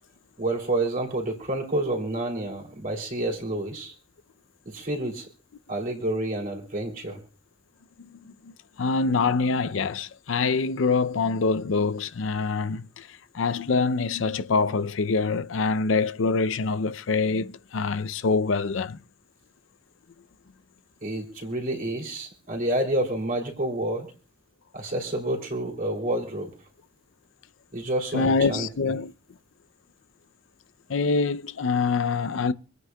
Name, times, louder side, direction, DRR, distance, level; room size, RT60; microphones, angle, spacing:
voice 1, 0.4-3.9 4.6-5.3 5.7-7.2 21.0-24.1 24.7-26.5 27.7-28.7, right 1 dB, 45° right, 3.2 m, -29 dB
voice 2, 8.0-13.1 13.3-19.0 28.1-29.1 30.9-32.5, left 4 dB, 90° left, 0.5 m, -25 dB
26.0 x 9.3 x 2.3 m
head